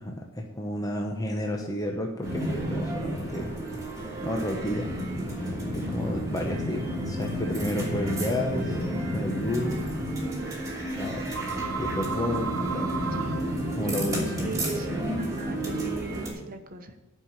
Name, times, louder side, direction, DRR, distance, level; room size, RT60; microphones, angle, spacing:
voice 1, 0.0-3.5 4.2-4.9 5.7-8.8 9.1-9.8 11.0-11.4 11.8-12.9 13.7-14.6, left 1 dB, 15° left, 1 dB, 0.9 m, -31 dB
sound 1, 2.2-16.3, equal, 15° right, 2.6 m, -31 dB
voice 2, 5.8-6.2 10.4-11.0 13.1-13.4 13.8-14.9 15.2-16.9, right 1 dB, 45° right, 6 dB, 1.1 m, -40 dB
sound 2, 8.8-14.8, right 5 dB, 80° right, 0.9 m, -36 dB
10.0 x 5.6 x 7.4 m, 0.97 s
head